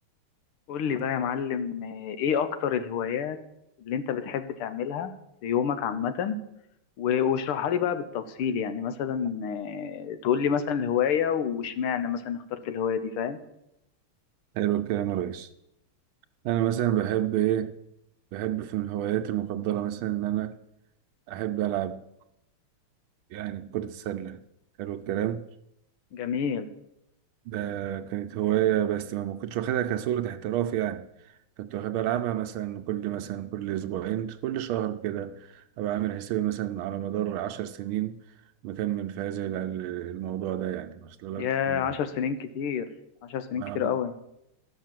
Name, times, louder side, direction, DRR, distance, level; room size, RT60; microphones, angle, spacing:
voice 1, 0.7-3.4 3.8-5.1 5.4-6.4 7.0-13.4 26.1-26.7 41.4-42.9 43.3-44.1, left 8 dB, 85° left, 1.8 m, -28 dB
voice 2, 14.5-15.5 16.4-17.7 18.3-20.6 21.3-22.0 23.3-24.4 24.8-25.4 27.5-31.0 31.6-38.2 38.6-42.0 43.5-43.9, right 12 dB, 75° right, 1.4 m, -29 dB
13.0 x 6.4 x 7.5 m
omnidirectional pair, 2.4 m